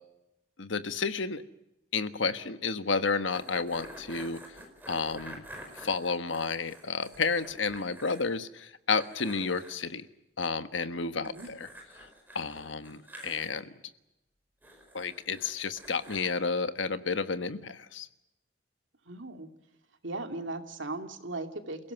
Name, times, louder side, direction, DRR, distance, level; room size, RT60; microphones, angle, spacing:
voice 1, 0.6-1.4 1.9-4.6 4.9-5.4 5.7-10.1 10.4-11.7 12.3-13.7 14.9-18.1, left 4 dB, 80° left, 11 dB, 1.3 m, -31 dB
sound 1, 3.3-8.3 8.6-8.7 9.0-9.8 11.2-13.5 14.6-16.3, right 1 dB, 10° right, 4.9 m, -48 dB
voice 2, 11.1-11.5 19.1-19.5 20.0-21.9, right 2 dB, 80° right, 6 dB, 2.5 m, -38 dB
28.5 x 16.5 x 9.3 m, 0.91 s
head